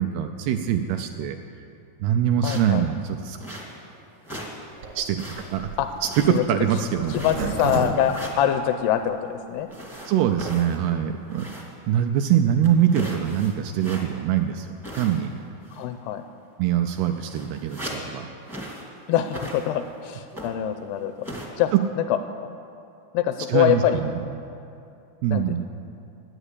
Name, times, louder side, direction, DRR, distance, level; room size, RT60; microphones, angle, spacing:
voice 1, 0.0-1.4 2.0-3.4 5.0-5.2 5.5-5.7 6.0-7.1 10.1-11.5 11.9-14.7 15.0-15.3 16.6-18.3 21.7-21.8 23.5-24.1 25.2-25.6, right 9 dB, 85° right, 5 dB, 2.3 m, -23 dB
voice 2, 2.4-2.9 5.8-5.9 6.3-6.4 7.1-9.7 15.7-16.2 19.1-21.1 21.6-21.7 22.0-22.2 23.1-24.0 25.3-25.6, left 10 dB, 85° left, 8 dB, 2.4 m, -24 dB
sound 1, 2.4-2.8 3.4-3.9 4.2-4.6 4.9-5.6 6.0-6.6 7.1-7.6 8.0-8.5 9.7-11.8 12.1-12.2 12.6-14.3 14.8-15.4 15.6-15.9 16.6-16.7 16.9-18.1 18.5-18.9 19.2-19.9 20.3-20.7 21.2-21.5, equal, ahead, 0.4 m, -38 dB
Zipper (clothing), 4.8-9.1 9.6-9.7 9.8-9.9 10.2-10.5, right 4 dB, 70° right, 1.8 m, -32 dB
12.0 x 10.0 x 8.3 m, 2.6 s
omnidirectional pair, 5.0 m